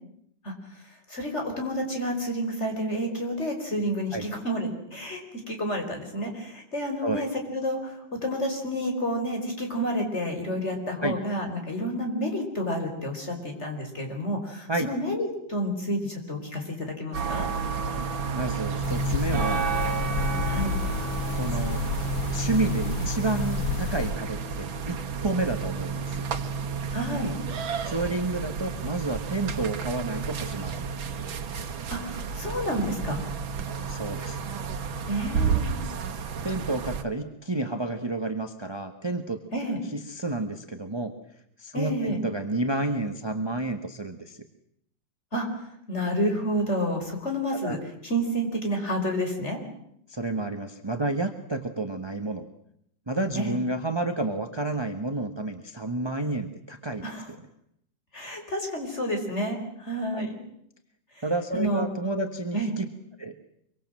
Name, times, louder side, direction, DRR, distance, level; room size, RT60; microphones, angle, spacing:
voice 1, 1.1-5.2 5.5-7.9 8.2-17.5 20.4-20.7 26.9-27.3 31.9-33.2 35.1-35.8 39.5-39.8 41.7-42.2 45.3-45.5 45.9-47.8 48.0-49.6 53.4-53.6 57.0-57.2 58.1-60.4 61.2-61.3 61.5-61.8 62.5-62.8, equal, 35° left, 3 dB, 5.1 m, -29 dB
sound 1, 17.1-37.0, right 5 dB, 85° right, 2.2 m, -31 dB
voice 2, 18.3-19.6 21.3-21.8 22.3-25.0 25.2-26.2 27.8-30.9 33.9-34.4 36.4-39.4 39.9-41.1 41.6-44.4 47.5-47.8 50.1-52.4 53.1-57.0 60.1-60.3 61.2-62.8 63.2-63.3, right 2 dB, 15° right, 7 dB, 1.2 m, -30 dB
sound 2, 18.8-24.1, left 6 dB, 60° left, 1.7 m, -31 dB
26.0 x 24.0 x 7.7 m, 0.73 s
omnidirectional pair, 2.1 m